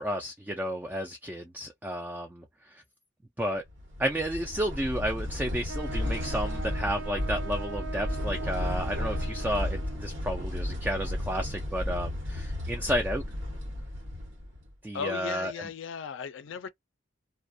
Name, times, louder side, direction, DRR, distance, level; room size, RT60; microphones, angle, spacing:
voice 1, 0.0-2.4 2.7-2.8 3.4-3.6 4.0-13.2 14.8-15.5, equal, 10° right, 0.3 m, -32 dB
sound 1, 3.7-14.7, left 1 dB, 65° right, 1.0 m, -33 dB
Wind instrument woodwind instrument, 5.7-10.1, right 4 dB, 90° right, 0.5 m, -41 dB
voice 2, 14.9-16.7, left 7 dB, 70° left, 0.4 m, -36 dB
2.3 x 2.1 x 2.6 m
head